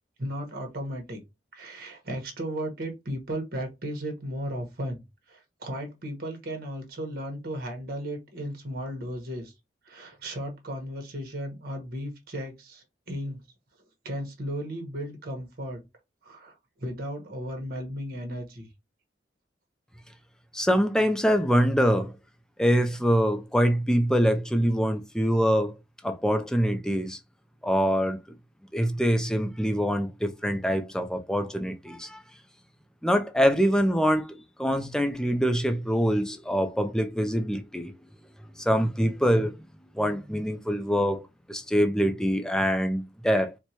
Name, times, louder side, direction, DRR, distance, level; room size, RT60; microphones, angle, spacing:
voice 1, 0.2-1.2 1.5-9.5 9.8-13.4 14.0-15.8 16.2-18.7, equal, 50° right, 1.1 m, -35 dB
voice 2, 20.5-22.1 22.6-25.8 26.0-27.2 27.6-28.2 28.7-32.2 33.0-37.9 38.5-39.7 39.9-43.6, equal, 5° left, 0.5 m, -24 dB
4.4 x 2.2 x 2.8 m
head